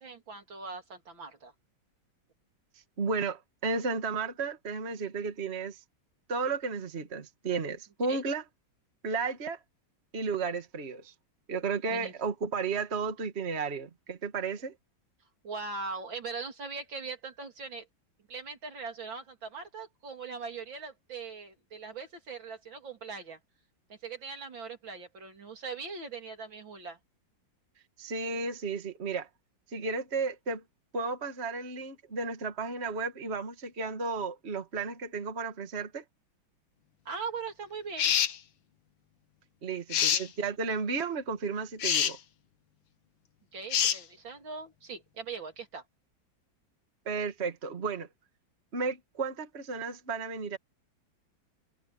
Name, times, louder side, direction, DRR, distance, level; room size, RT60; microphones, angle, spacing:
voice 1, 0.0-1.5 8.1-8.2 11.9-12.1 15.4-17.9 18.3-23.4 23.9-27.0 37.1-38.1 40.0-40.1 43.5-45.8, right 4 dB, 75° right, 4.0 m, -40 dB
voice 2, 3.0-5.8 6.3-8.4 9.0-9.6 10.1-11.1 11.5-14.7 28.0-29.3 29.7-30.6 30.9-36.0 39.6-42.2 47.1-48.1 48.7-50.6, right 4 dB, 35° right, 1.9 m, -33 dB
sound 1, 38.0-38.4 39.9-40.3 41.8-42.1 43.7-44.0, left 9 dB, 90° left, 2.0 m, -25 dB
omnidirectional pair, 2.1 m